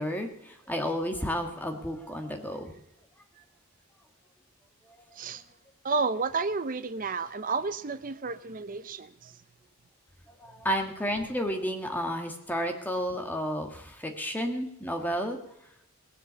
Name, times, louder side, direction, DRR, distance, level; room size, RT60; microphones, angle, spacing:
voice 1, 0.0-2.7 10.4-15.4, equal, 10° left, 1.7 m, -31 dB
voice 2, 5.8-9.4, right 4 dB, 40° right, 0.7 m, -31 dB
19.0 x 7.6 x 6.9 m
head